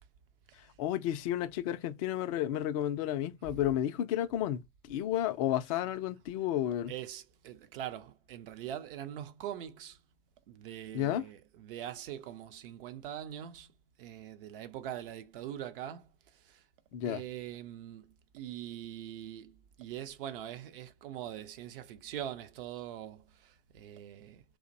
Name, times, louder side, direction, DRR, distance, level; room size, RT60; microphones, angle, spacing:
voice 1, 0.8-4.6 4.9-6.9 10.9-11.2 16.9-17.2, left 12 dB, 30° left, 0.4 m, -32 dB
voice 2, 6.9-10.0 10.5-13.7 14.0-16.6 17.0-24.4, right 11 dB, 50° right, 0.5 m, -43 dB
2.5 x 2.0 x 2.4 m
hypercardioid pair, 105°, 36 cm